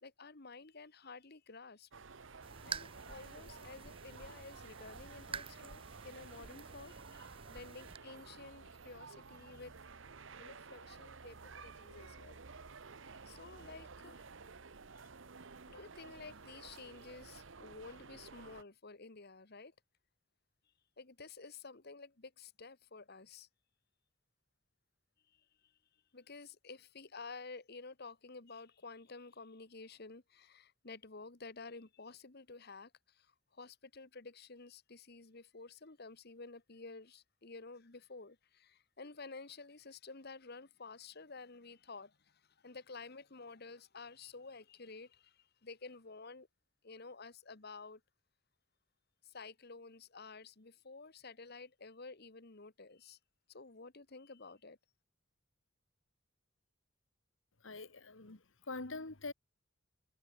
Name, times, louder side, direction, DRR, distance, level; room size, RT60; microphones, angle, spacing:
voice 1, 0.0-1.9 2.6-9.8 10.4-12.4 13.2-14.2 15.7-19.7 21.0-23.5 25.3-25.7 26.1-46.5 46.8-48.0 49.2-53.2 53.5-54.8, left 4 dB, 50° left, 1.4 m, -52 dB
sound 1, 1.9-18.6, right 4 dB, 65° right, 1.0 m, -53 dB
sound 2, 2.4-8.0, right 6 dB, 25° right, 0.6 m, -49 dB
voice 2, 57.6-59.3, left 3 dB, 70° left, 1.8 m, -44 dB
head